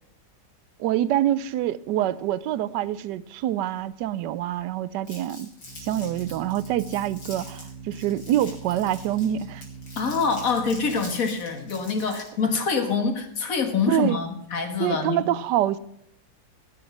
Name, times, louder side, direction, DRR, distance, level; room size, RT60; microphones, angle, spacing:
voice 1, 0.8-5.5 5.8-9.6 13.9-14.2 14.8-15.8, right 12 dB, 75° right, 1.2 m, -26 dB
Organ, 4.0-14.3, right 5 dB, 10° left, 1.5 m, -44 dB
Crumpling crinkling, 5.1-12.4, left 2 dB, 70° left, 4.1 m, -45 dB
voice 2, 10.0-15.2, left 5 dB, 50° left, 1.8 m, -25 dB
15.5 x 6.6 x 5.8 m
omnidirectional pair, 2.0 m